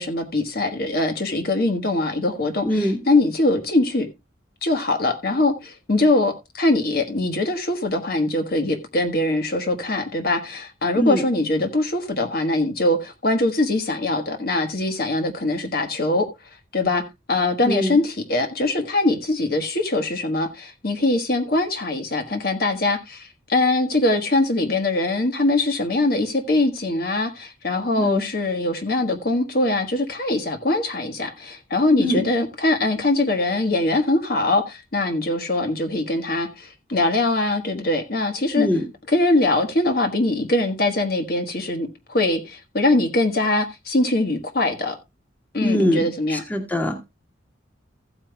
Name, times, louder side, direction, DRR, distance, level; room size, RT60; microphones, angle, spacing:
voice 1, 0.0-4.1 4.6-16.3 16.7-17.0 17.3-38.7 39.1-45.0 45.5-46.4, left 2 dB, 55° left, 1.4 m, -22 dB
voice 2, 2.7-3.0 10.9-11.2 17.6-18.0 28.0-28.2 32.0-32.2 38.6-38.8 45.6-47.1, equal, 10° left, 1.7 m, -23 dB
15.5 x 8.7 x 2.2 m
head